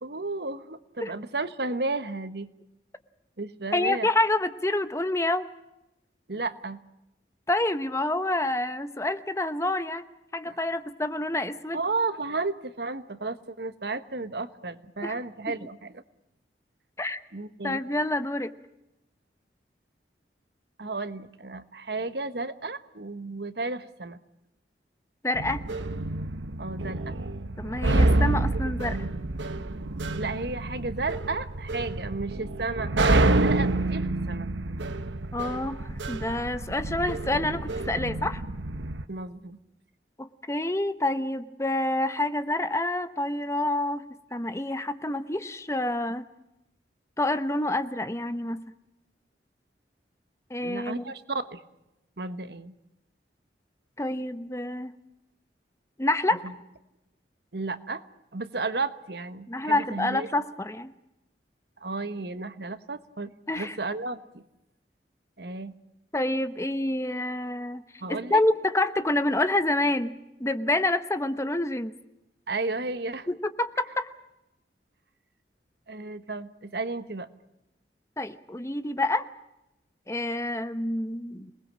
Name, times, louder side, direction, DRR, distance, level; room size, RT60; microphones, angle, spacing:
voice 1, 0.0-2.5 3.4-4.1 6.3-6.8 10.4-10.6 11.7-16.0 17.3-17.8 20.8-24.2 26.6-27.1 28.5-29.1 30.2-34.5 39.1-39.6 50.6-51.6 52.2-52.7 56.4-56.5 57.5-58.0 58.3-60.3 61.8-64.4 65.4-65.7 68.0-68.4 72.5-73.3 75.9-77.3, right 3 dB, 65° right, 12 dB, 1.3 m, -33 dB
voice 2, 3.7-5.5 7.5-10.0 10.3-11.8 15.0-15.1 15.5-15.6 17.0-17.2 17.6-18.5 25.2-25.6 27.6-29.0 35.3-38.4 40.2-44.0 44.3-46.3 47.2-48.6 50.5-51.0 54.0-54.9 56.0-56.4 59.5-60.9 63.5-63.8 66.1-67.8 68.1-72.0 73.3-74.1 78.2-79.2 80.1-81.5, left 1 dB, 15° left, 11 dB, 0.9 m, -27 dB
sound 1, 25.3-39.0, right 2 dB, 90° right, 1.2 m, -28 dB
27.0 x 20.0 x 7.5 m, 0.89 s
head